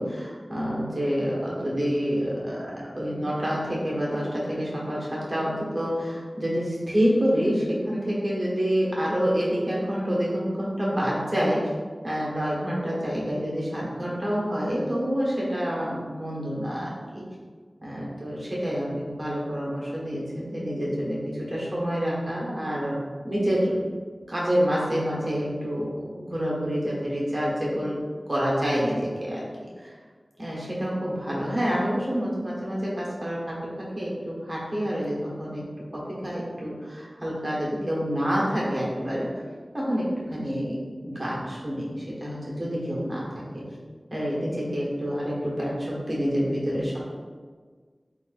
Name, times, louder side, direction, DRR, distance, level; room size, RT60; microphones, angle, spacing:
voice 1, 0.0-11.7 12.0-17.2 17.8-23.0 23.2-23.7 24.3-28.0 28.3-29.4 29.8-29.9 30.4-35.6 35.9-39.3 39.7-43.6 44.1-47.0, equal, 35° right, -5 dB, 1.2 m, -27 dB
3.6 x 2.4 x 4.0 m, 1.5 s
wide cardioid pair, 60°, 0 cm